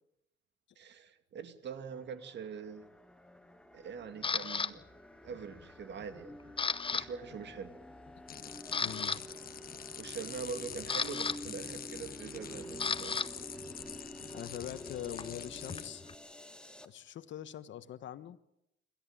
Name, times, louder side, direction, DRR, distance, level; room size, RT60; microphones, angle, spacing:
voice 1, 0.8-2.9 3.7-4.8 5.2-6.4 6.9-7.8 10.0-13.2, right 6 dB, 60° right, 9 dB, 2.4 m, -43 dB
sound 1, 1.9-16.9, equal, 5° left, 1.9 m, -50 dB
Camera, 4.2-4.7 5.3-5.6 6.0-7.0 7.3-7.5 8.1-8.2 8.6-9.2 10.4-13.3 13.6-16.1, left 5 dB, 25° left, 0.9 m, -35 dB
sound 2, 8.3-15.9, left 8 dB, 50° left, 1.3 m, -46 dB
voice 2, 8.8-9.2 13.4-13.5 14.3-16.0 16.8-18.4, left 11 dB, 70° left, 13 dB, 1.3 m, -43 dB
26.5 x 13.5 x 8.8 m, 0.84 s
cardioid pair, 90°, 20 cm